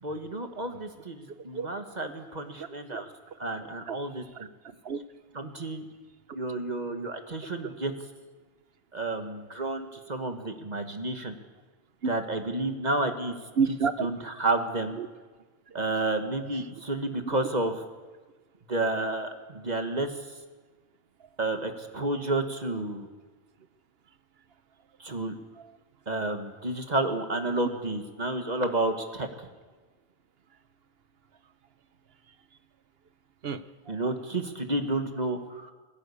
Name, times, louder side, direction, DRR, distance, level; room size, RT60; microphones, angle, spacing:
voice 1, 0.0-3.1 3.4-4.2 5.3-5.8 6.3-7.9 8.9-11.3 12.1-13.4 14.0-15.0 15.7-17.7 18.7-20.1 21.4-23.1 25.0-25.3 26.1-29.5 33.9-35.7, right 2 dB, 40° right, 6 dB, 1.6 m, -30 dB
voice 2, 2.6-4.0 4.3-4.5 4.8-5.0 12.0-12.1 13.6-14.1 15.0-15.1 15.7-15.8 17.3-17.4 25.6-25.7 27.6-27.7 33.4-34.0, right 5 dB, 65° right, 12 dB, 1.1 m, -31 dB
20.5 x 16.5 x 8.5 m, 1.3 s
omnidirectional pair, 1.1 m